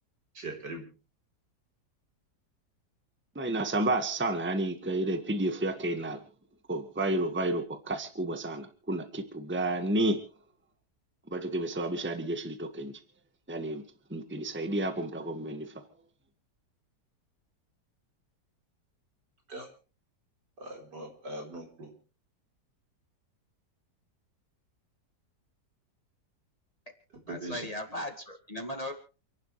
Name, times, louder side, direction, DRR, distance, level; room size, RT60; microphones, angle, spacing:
voice 1, 0.3-0.9 19.5-19.7 20.6-21.9 27.3-27.7, right 1 dB, 75° right, 2 dB, 4.9 m, -40 dB
voice 2, 3.3-6.2 6.7-10.2 11.3-12.9 13.5-13.8 14.1-15.7, right 1 dB, 5° right, 7 dB, 1.5 m, -31 dB
voice 3, 27.3-28.9, left 1 dB, 20° left, 5 dB, 2.0 m, -37 dB
29.0 x 11.5 x 3.3 m, 0.36 s
omnidirectional pair, 1.8 m